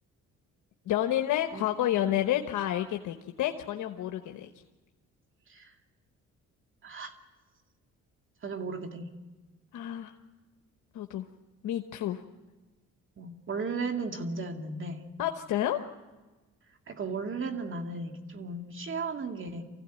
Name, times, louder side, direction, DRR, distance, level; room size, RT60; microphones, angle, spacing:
voice 1, 0.9-4.5 9.7-10.1 10.9-11.2 11.6-12.2 15.2-15.8, left 12 dB, 85° left, 5 dB, 1.1 m, -30 dB
voice 2, 6.8-7.2 8.4-9.1 13.2-15.0 16.9-19.6, right 4 dB, 40° right, 5 dB, 2.4 m, -35 dB
25.0 x 15.5 x 9.2 m, 1.2 s
cardioid pair, 90°, 30 cm